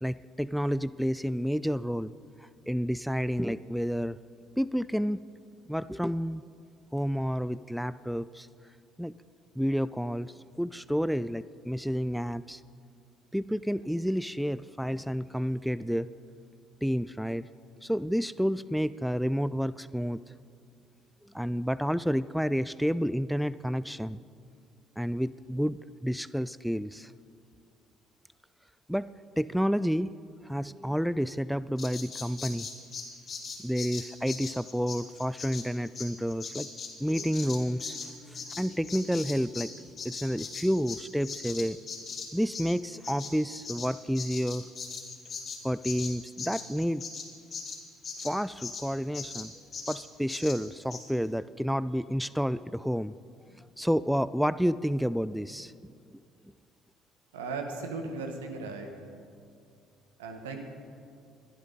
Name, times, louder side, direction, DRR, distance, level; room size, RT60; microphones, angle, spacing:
voice 1, 0.0-2.1 2.4-4.2 4.6-5.2 5.7-6.4 6.9-8.5 9.0-9.1 9.6-12.6 13.3-16.1 16.8-17.5 17.8-20.2 21.2-24.2 25.0-27.1 28.9-30.1 30.4-32.7 33.6-36.7 37.0-39.7 40.0-41.8 42.3-44.7 45.6-47.0 48.2-49.5 49.9-53.1 53.6-56.2, equal, ahead, 17 dB, 0.3 m, -30 dB
Bird vocalization bird call bird song, 31.8-39.7 40.0-48.9 49.1-49.5 49.7-50.0 50.3-50.6 50.9-51.0, left 5 dB, 45° left, 2.6 m, -40 dB
voice 2, 57.3-58.9 60.2-60.6, right 3 dB, 85° right, 4 dB, 1.5 m, -36 dB
21.5 x 11.0 x 4.1 m, 2.3 s
hypercardioid pair, 55°, 0 cm